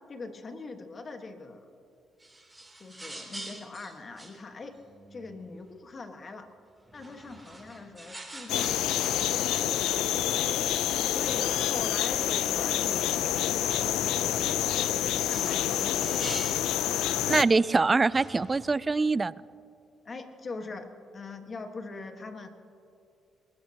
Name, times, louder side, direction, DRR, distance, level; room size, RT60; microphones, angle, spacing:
voice 1, 0.1-1.6 2.8-4.8 5.1-6.5 6.9-10.4 11.1-16.4 17.1-17.2 20.0-22.5, left 3 dB, 40° left, 6 dB, 1.5 m, -42 dB
sound 1, 2.2-5.7 6.8-9.8 10.1-10.3 10.8-10.9 11.6-11.7 12.1-12.2 12.9-13.1 14.7-16.7 17.6-17.7 18.0-18.7, right 2 dB, 10° right, 3.1 m, -45 dB
sound 2, 8.5-17.4, left 11 dB, 90° left, 0.5 m, -27 dB
voice 2, 17.3-19.3, right 3 dB, 25° right, 19 dB, 0.3 m, -24 dB
22.5 x 20.0 x 2.9 m, 2.6 s
cardioid pair, 90°, 0 cm